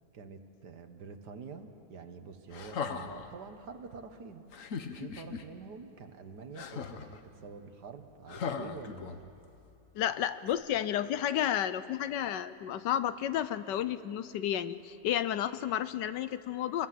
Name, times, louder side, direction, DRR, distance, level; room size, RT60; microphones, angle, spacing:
voice 1, 0.1-4.4 4.9-9.3, right 5 dB, 70° right, 7 dB, 1.9 m, -47 dB
sound 1, 2.5-3.3 4.5-5.4 6.5-7.2 8.3-9.4 10.5-10.6, left 6 dB, 55° left, 1.3 m, -38 dB
voice 2, 9.9-16.9, left 10 dB, 85° left, 13 dB, 1.4 m, -32 dB
28.5 x 21.5 x 7.7 m, 2.6 s
omnidirectional pair, 1.8 m